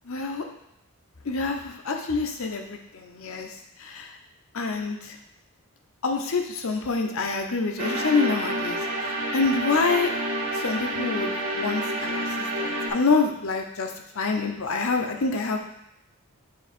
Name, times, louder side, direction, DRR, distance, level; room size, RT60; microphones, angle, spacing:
voice 1, 0.1-0.4 1.2-3.5 3.8-4.1 4.5-5.2 6.0-10.1 10.5-12.3 12.6-15.6, left 4 dB, 70° left, 3 dB, 0.8 m, -27 dB
sound 1, 7.8-12.9, right 1 dB, 75° right, 1.7 m, -29 dB
7.6 x 3.0 x 4.3 m, 0.78 s
head